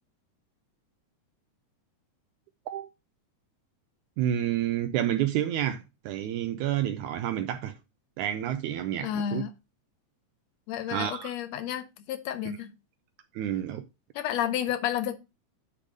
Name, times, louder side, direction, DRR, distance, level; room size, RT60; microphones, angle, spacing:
voice 1, 4.2-7.7 8.2-9.4 10.9-11.3 13.3-13.8, right 11 dB, 80° right, 1.8 m, -29 dB
voice 2, 9.0-9.5 10.7-12.7 14.1-15.2, left 10 dB, 75° left, 1.6 m, -31 dB
9.9 x 3.5 x 5.1 m
omnidirectional pair, 3.8 m